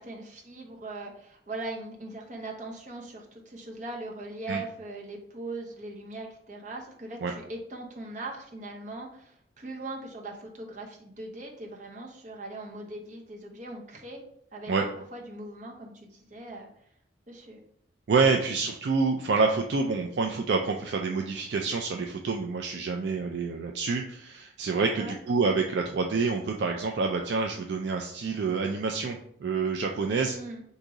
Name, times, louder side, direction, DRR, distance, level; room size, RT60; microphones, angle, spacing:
voice 1, 0.0-14.2 14.5-16.7 17.3-17.6 24.9-25.2 30.3-30.6, right 2 dB, 40° right, 0 dB, 0.8 m, -40 dB
voice 2, 18.1-30.4, right 4 dB, 65° right, 2 dB, 0.4 m, -27 dB
3.9 x 2.7 x 4.7 m, 0.67 s
head